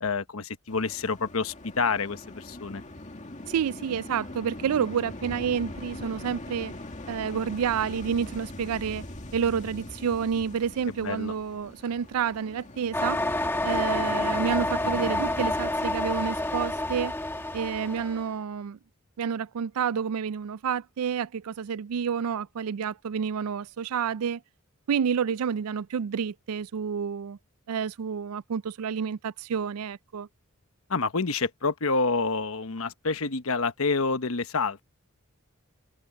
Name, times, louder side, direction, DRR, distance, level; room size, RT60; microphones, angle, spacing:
voice 1, 0.0-2.8 11.0-11.3 30.9-34.8, left 4 dB, 70° left, 1.1 m, -28 dB
sound 1, 0.7-15.6, left 1 dB, 35° left, 2.1 m, -41 dB
voice 2, 3.5-6.7 7.1-9.0 9.3-13.2 13.6-17.1 17.5-18.8 19.2-24.4 24.9-27.4 27.7-30.3, right 7 dB, 85° right, 0.4 m, -29 dB
sound 2, 12.9-18.2, left 1 dB, 10° left, 1.2 m, -28 dB
head